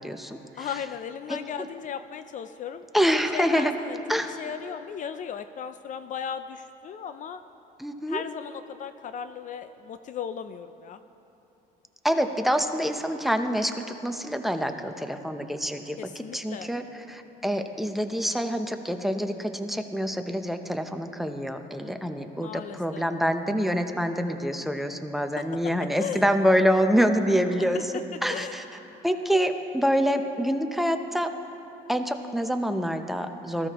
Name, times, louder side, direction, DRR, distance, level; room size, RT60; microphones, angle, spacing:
voice 1, 0.0-0.7 1.3-1.4 2.9-3.7 4.1-4.3 7.8-8.2 12.0-27.9 28.2-28.6 29.0-31.3 31.9-33.7, equal, ahead, 7 dB, 0.7 m, -26 dB
voice 2, 0.6-2.8 3.3-4.0 4.2-7.4 8.1-11.0 16.0-16.7 22.4-23.0 25.4-25.5 26.0-26.2 27.7-27.8 28.3-28.6, left 7 dB, 50° left, 11 dB, 0.4 m, -36 dB
19.0 x 14.5 x 3.0 m, 2.9 s
cardioid pair, 110°, 17 cm